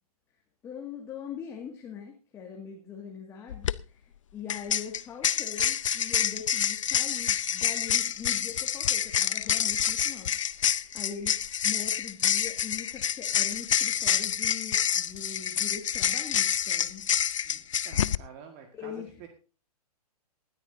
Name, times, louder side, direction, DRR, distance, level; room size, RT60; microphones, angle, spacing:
voice 1, 0.6-10.3 10.6-17.1 18.7-19.1, left 7 dB, 15° left, 0 dB, 2.0 m, -42 dB
sound 1, 3.5-3.7 4.5-18.2, left 9 dB, 50° left, 0.6 m, -27 dB
voice 2, 17.4-19.3, right 7 dB, 30° right, 5 dB, 1.7 m, -49 dB
19.5 x 13.0 x 2.7 m, 0.35 s
figure-of-eight pair, 120°, 20 cm